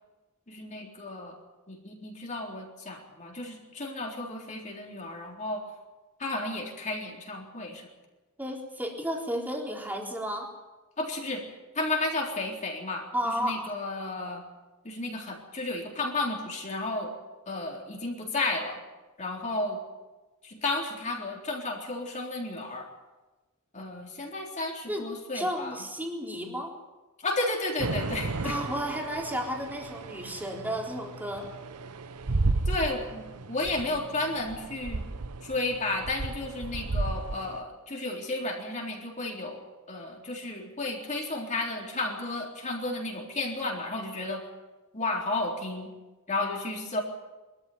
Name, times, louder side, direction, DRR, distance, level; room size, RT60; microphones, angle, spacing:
voice 1, 0.5-1.3 1.7-5.6 6.2-7.9 11.0-11.4 11.7-14.4 14.8-17.1 17.5-18.8 19.2-19.8 20.4-22.9 23.7-25.8 27.2-28.6 32.7-35.1 35.4-44.4 44.9-45.9 46.3-47.0, left 2 dB, 35° left, -1 dB, 3.9 m, -33 dB
voice 2, 8.4-10.5 13.1-13.7 24.9-25.1 25.3-26.7 28.4-31.5, equal, 10° right, 0 dB, 3.9 m, -32 dB
sound 1, 27.8-37.6, right 3 dB, 90° right, 1.0 m, -34 dB
24.0 x 14.0 x 9.5 m, 1.2 s
head